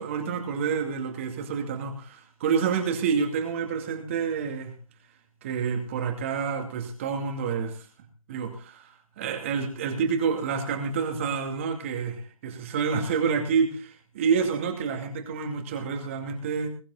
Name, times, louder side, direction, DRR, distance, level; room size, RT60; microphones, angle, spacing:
voice 1, 0.0-4.7 5.4-7.9 8.3-16.7, right 6 dB, 25° right, 5 dB, 2.4 m, -28 dB
21.5 x 10.5 x 4.0 m, 0.35 s
figure-of-eight pair, 155°, 18 cm